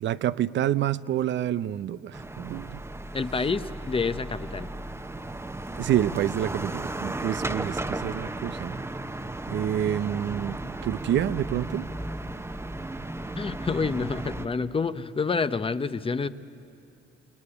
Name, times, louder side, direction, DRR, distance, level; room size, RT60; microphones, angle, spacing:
voice 1, 0.0-2.8 5.8-8.8 9.5-11.9, right 11 dB, 65° right, 0.6 m, -28 dB
sound 1, 2.1-14.5, right 2 dB, 15° right, 1.0 m, -35 dB
voice 2, 3.1-4.7 13.4-16.3, left 4 dB, 25° left, 0.8 m, -28 dB
28.0 x 19.5 x 9.9 m
cardioid pair, 90°, 20 cm